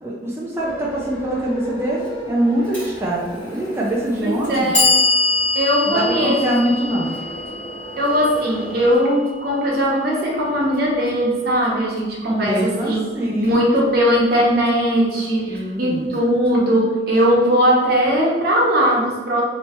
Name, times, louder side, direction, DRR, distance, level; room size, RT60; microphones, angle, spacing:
voice 1, 0.0-4.7 5.9-7.1 12.3-13.6 15.5-16.2, right 1 dB, 15° right, -5 dB, 0.4 m, -23 dB
sound 1, 0.6-9.0, right 1 dB, 25° left, 1.1 m, -35 dB
Clock, 2.7-2.9 3.8-3.9 4.4-10.5, left 3 dB, 5° left, 1.4 m, -24 dB
voice 2, 4.2-4.9 5.5-6.4 8.0-13.0 13.4-19.4, equal, 60° right, -4 dB, 1.0 m, -19 dB
3.2 x 3.0 x 2.9 m, 1.3 s
head